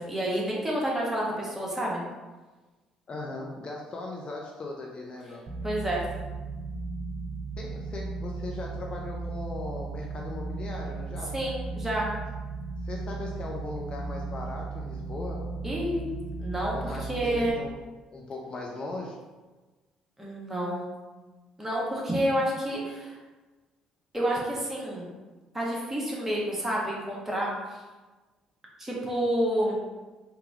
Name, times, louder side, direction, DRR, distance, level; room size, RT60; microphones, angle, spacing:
voice 1, 0.0-2.0 5.6-6.0 11.3-12.1 15.6-16.1 16.4-17.6 20.2-20.9 21.6-23.1 24.1-25.1 25.5-27.5 28.8-29.8, right 1 dB, 10° right, -4 dB, 1.4 m, -29 dB
voice 2, 3.1-5.5 7.6-11.3 12.8-15.5 16.7-17.8 18.1-19.2, left 2 dB, 35° left, -1 dB, 0.5 m, -38 dB
sound 1, 5.5-17.5, right 3 dB, 45° right, 0.7 m, -36 dB
3.8 x 2.8 x 3.5 m, 1.2 s
figure-of-eight pair, 50°, 3 cm